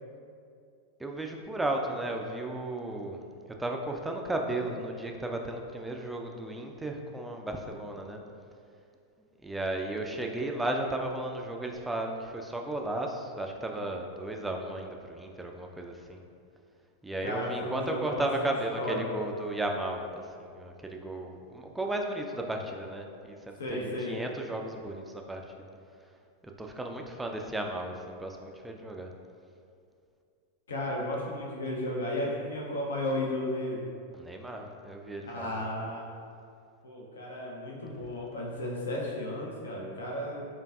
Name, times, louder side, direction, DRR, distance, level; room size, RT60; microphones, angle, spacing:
voice 1, 1.0-3.2 3.6-8.2 9.4-16.2 17.0-25.7 26.6-29.1 34.1-35.7, right 1 dB, 5° right, 2 dB, 0.3 m, -34 dB
voice 2, 17.2-19.0 23.6-24.2 30.7-33.8 35.3-36.0 36.8-40.5, left 1 dB, 65° left, -3 dB, 0.5 m, -34 dB
4.6 x 2.5 x 2.3 m, 2.4 s
figure-of-eight pair, 90°, 0 cm